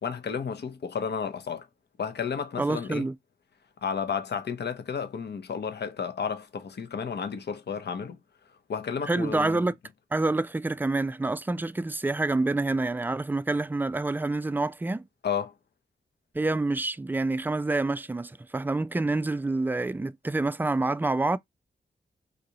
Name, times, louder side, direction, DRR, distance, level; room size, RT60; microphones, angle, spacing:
voice 1, 0.0-1.7 2.0-3.1 3.8-8.2 8.7-9.6 15.2-15.5, left 6 dB, 60° left, 0.8 m, -32 dB
voice 2, 2.6-3.1 9.1-9.7 10.1-15.1 16.3-21.4, right 2 dB, 10° right, 0.3 m, -27 dB
3.8 x 2.6 x 2.9 m
supercardioid pair, 40°, 19 cm